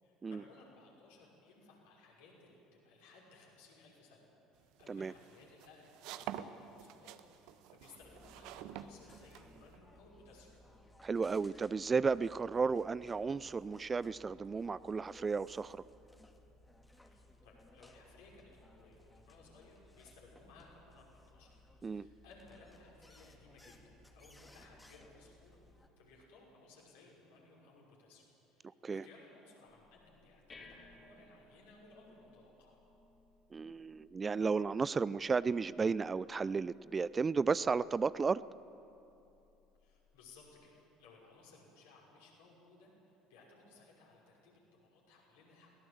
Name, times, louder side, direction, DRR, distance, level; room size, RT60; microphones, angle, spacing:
voice 1, 0.0-4.3 4.5-10.5 17.0-21.5 21.8-28.2 28.5-32.8 34.4-34.5 39.8-45.7, left 3 dB, 65° left, -3 dB, 5.8 m, -61 dB
sound 1, 4.6-9.8, right 11 dB, 60° right, 0.8 m, -47 dB
sound 2, 8.0-25.9, left 1 dB, 10° left, 2.0 m, -61 dB
voice 2, 11.0-15.8 21.8-22.1 28.8-29.0 33.5-38.4, right 5 dB, 25° right, 19 dB, 0.4 m, -33 dB
sound 3, 29.7-40.7, left 2 dB, 30° left, 3.4 m, -64 dB
22.0 x 17.5 x 7.8 m, 2.9 s
figure-of-eight pair, 60°, 0 cm